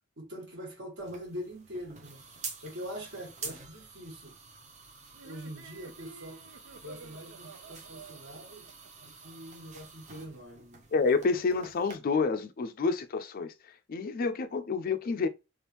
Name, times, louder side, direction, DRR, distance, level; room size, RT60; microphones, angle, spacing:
voice 1, 0.2-2.2 2.6-4.3 5.2-6.4 6.8-8.7 9.0-11.4, equal, 60° right, 1.4 m, -43 dB
sound 1, 1.0-12.0, right 4 dB, 35° right, 0.7 m, -48 dB
sound 2, 5.1-9.8, right 5 dB, 85° right, 0.4 m, -52 dB
voice 2, 10.9-15.3, left 4 dB, 45° left, 0.4 m, -29 dB
3.4 x 2.4 x 2.8 m
head